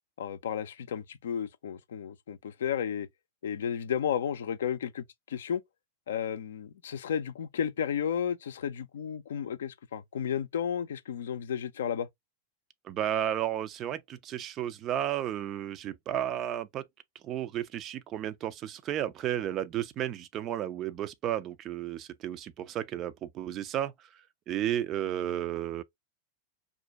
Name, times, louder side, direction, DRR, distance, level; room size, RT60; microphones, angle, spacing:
voice 1, 0.2-3.1 3.4-5.6 6.1-12.1, left 8 dB, 60° left, 0.4 m, -33 dB
voice 2, 12.8-16.8 17.2-24.1 24.5-25.8, right 11 dB, 35° right, 0.3 m, -33 dB
2.5 x 2.1 x 3.9 m
figure-of-eight pair, 90°, 0 cm